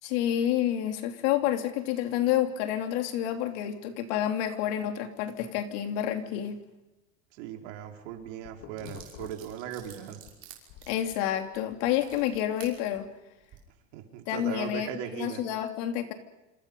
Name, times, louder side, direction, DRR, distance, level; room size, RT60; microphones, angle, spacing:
voice 1, 0.0-6.6 10.9-13.1 14.3-16.1, left 11 dB, 65° left, 6 dB, 3.1 m, -29 dB
voice 2, 7.3-10.2 13.9-15.4, right 9 dB, 70° right, 3 dB, 4.3 m, -38 dB
sound 1, 7.8-10.4 10.7-13.1, left 10 dB, 45° left, 2.4 m, -50 dB
sound 2, 8.2-8.3 8.8-12.7 13.3-13.6, right 11 dB, 35° right, 5.8 m, -50 dB
27.5 x 27.0 x 5.5 m, 1.0 s
cardioid pair, 175°, 38 cm